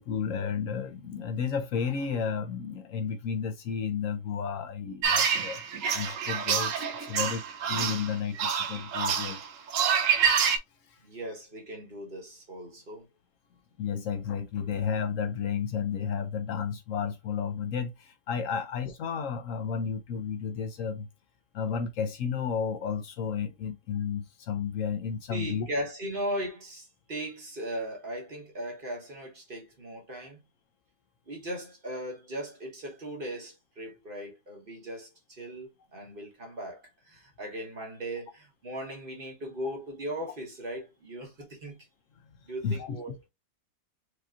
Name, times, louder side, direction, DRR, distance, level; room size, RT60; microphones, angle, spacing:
voice 1, 0.0-5.6 5.9-9.4 9.8-10.0 10.9-11.0 13.8-21.1 21.5-25.7 42.6-43.2, left 6 dB, 70° left, 0.9 m, -32 dB
sound 1, 5.0-10.6, right 7 dB, 70° right, 1.0 m, -27 dB
voice 2, 11.0-13.1 25.3-30.4 31.3-41.9 42.5-43.2, right 1 dB, 40° right, 1.2 m, -38 dB
4.9 x 2.9 x 2.4 m
omnidirectional pair, 1.5 m